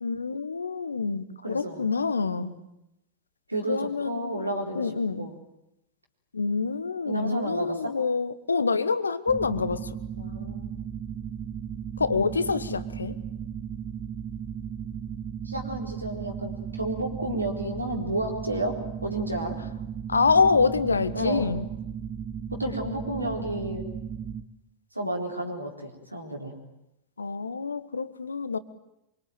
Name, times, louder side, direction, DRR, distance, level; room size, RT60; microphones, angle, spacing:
voice 1, 0.0-2.5 3.7-4.4 4.7-5.3 6.3-9.9 12.0-13.1 20.1-21.6 27.2-28.6, left 4 dB, 75° left, 14 dB, 1.4 m, -26 dB
voice 2, 1.4-1.8 2.3-2.6 3.5-5.3 7.0-8.0 10.2-10.8 15.4-19.6 20.9-21.5 22.5-23.8 24.9-26.5, right 1 dB, 85° right, 1 dB, 4.1 m, -32 dB
sound 1, 9.3-24.4, right 8 dB, 25° right, 1.8 m, -36 dB
25.0 x 24.0 x 9.3 m, 0.86 s
figure-of-eight pair, 90°, 0 cm